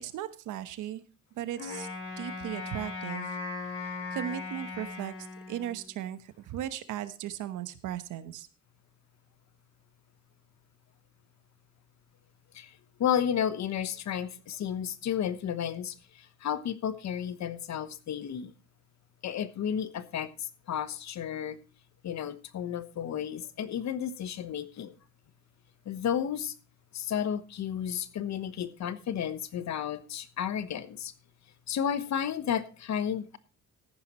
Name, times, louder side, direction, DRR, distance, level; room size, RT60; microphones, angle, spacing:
voice 1, 0.0-1.0 1.4-1.9 2.2-3.3 4.1-5.1 5.5-8.5, right 12 dB, 85° right, 1.1 m, -37 dB
Wind instrument woodwind instrument, 1.6-6.0, left 3 dB, 45° left, 6.3 m, -38 dB
voice 2, 13.0-15.9 16.4-18.5 19.2-20.3 20.7-21.6 22.0-24.9 25.9-26.5 26.9-31.1 31.7-33.4, left 9 dB, 65° left, 1.1 m, -32 dB
14.0 x 11.0 x 3.0 m
cardioid pair, 90°, 30 cm